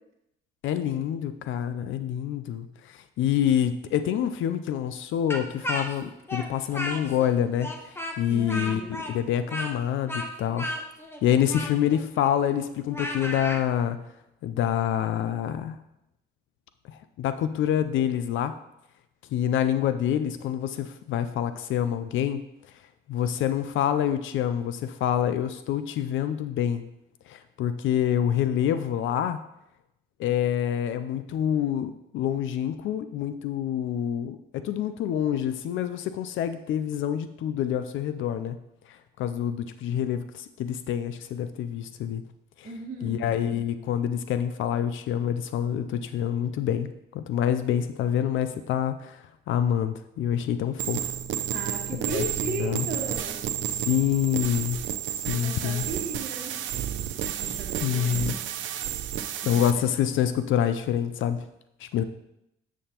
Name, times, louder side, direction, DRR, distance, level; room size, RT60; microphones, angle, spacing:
voice 1, 0.6-10.7 11.2-14.0 14.4-15.7 16.9-18.6 19.3-22.4 23.1-26.8 27.3-29.4 30.2-38.6 38.9-42.2 42.6-42.7 43.0-51.1 52.1-52.2 52.6-52.9 53.7-54.8 55.1-55.9 57.4-58.4 59.4-61.4 61.8-62.0, left 10 dB, 80° left, 11 dB, 0.4 m, -27 dB
Speech, 5.3-7.3 7.6-13.6, left 1 dB, 10° left, 1.0 m, -34 dB
voice 2, 8.3-9.0 42.6-43.2 51.5-53.4 55.3-56.6 57.4-58.4 59.4-59.7, right 3 dB, 45° right, -5 dB, 1.3 m, -36 dB
sound 1, 50.8-59.7, right 10 dB, 75° right, 0.5 m, -31 dB
7.5 x 7.2 x 2.9 m, 0.83 s
cardioid pair, 90°, 20 cm